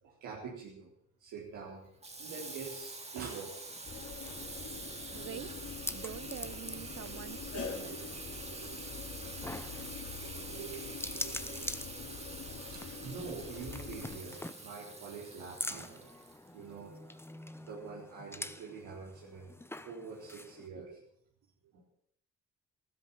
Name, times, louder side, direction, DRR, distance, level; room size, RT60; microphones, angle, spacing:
voice 1, 0.0-0.9 1.2-1.9 2.2-4.0 5.0-5.4 7.8-8.0 8.4-8.8 10.2-11.7 12.1-12.2 12.7-16.1 16.5-16.9 17.7-19.5 19.8-21.0 21.7-21.9, right 5 dB, 90° right, 4.0 m, -46 dB
Water tap faucet / Sink (filling or washing), 2.0-16.8, right 3 dB, 20° right, 2.4 m, -46 dB
sound 1, 3.7-20.7, left 1 dB, 10° left, 1.0 m, -46 dB
sound 2, 3.9-14.2, left 6 dB, 50° left, 3.0 m, -45 dB
voice 2, 5.1-5.5 5.9-8.0, right 10 dB, 50° right, 0.6 m, -45 dB
15.0 x 13.0 x 7.3 m
cardioid pair, 90°, 30 cm